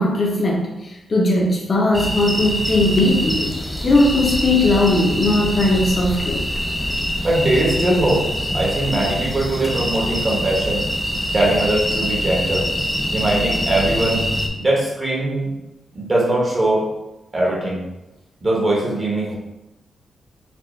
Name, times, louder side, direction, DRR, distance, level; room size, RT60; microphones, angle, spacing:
voice 1, 0.0-3.5 3.8-6.4, left 2 dB, 35° left, -2 dB, 0.7 m, -18 dB
sound 1, 1.9-14.5, equal, 5° left, 0.4 m, -24 dB
voice 2, 7.2-8.2 8.5-10.8 11.3-12.7 13.1-14.2 14.5-15.5 15.9-16.8 17.3-17.8 18.4-19.3, right 1 dB, 25° right, -3 dB, 0.8 m, -20 dB
4.3 x 2.4 x 3.1 m, 0.94 s
wide cardioid pair, 165°, 0 cm